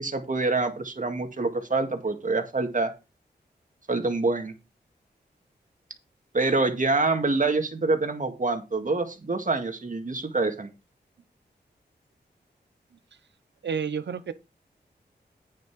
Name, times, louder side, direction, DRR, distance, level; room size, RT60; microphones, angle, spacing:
voice 1, 0.0-2.9 3.9-4.5 6.3-10.7, right 3 dB, 45° right, 1.9 m, -26 dB
voice 2, 13.6-14.3, right 6 dB, 80° right, 0.8 m, -30 dB
9.2 x 5.7 x 4.7 m
cardioid pair, 50°, 18 cm